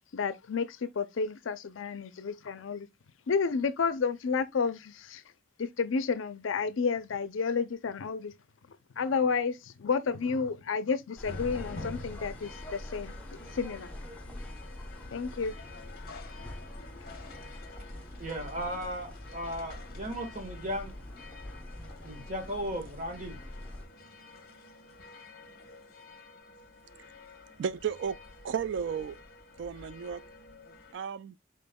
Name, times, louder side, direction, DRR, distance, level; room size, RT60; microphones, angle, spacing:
voice 1, 0.1-2.9 3.3-5.2 5.6-8.3 9.0-13.1 13.5-13.9 15.1-15.5, left 5 dB, 80° left, 0.5 m, -31 dB
sound 1, 11.2-30.9, left 3 dB, 50° left, 1.0 m, -49 dB
sound 2, 11.2-23.9, left 1 dB, 5° left, 0.8 m, -45 dB
voice 2, 18.2-20.9 22.0-23.4, equal, 40° right, 1.5 m, -36 dB
voice 3, 27.6-28.2 28.4-29.2 29.6-30.2 30.9-31.3, right 7 dB, 65° right, 0.3 m, -33 dB
5.2 x 4.4 x 2.2 m
head